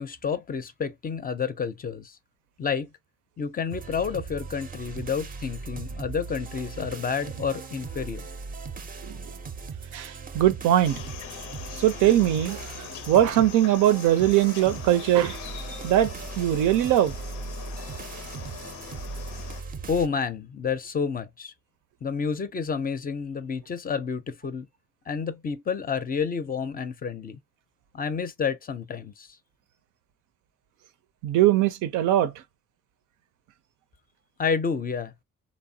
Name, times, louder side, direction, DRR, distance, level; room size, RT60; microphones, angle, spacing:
voice 1, 0.0-2.2 2.6-2.9 3.4-8.3 19.9-21.5 22.0-24.7 25.1-27.4 27.9-29.4 34.4-35.1, left 6 dB, 30° left, 0.4 m, -30 dB
sound 1, 3.7-20.1, right 4 dB, 30° right, 0.5 m, -39 dB
voice 2, 9.9-11.0 11.7-15.4 15.8-17.1 31.2-32.3, right 12 dB, 85° right, 0.5 m, -21 dB
sound 2, 10.8-19.6, left 9 dB, 90° left, 0.6 m, -41 dB
3.0 x 2.0 x 2.6 m
cardioid pair, 90°, 30 cm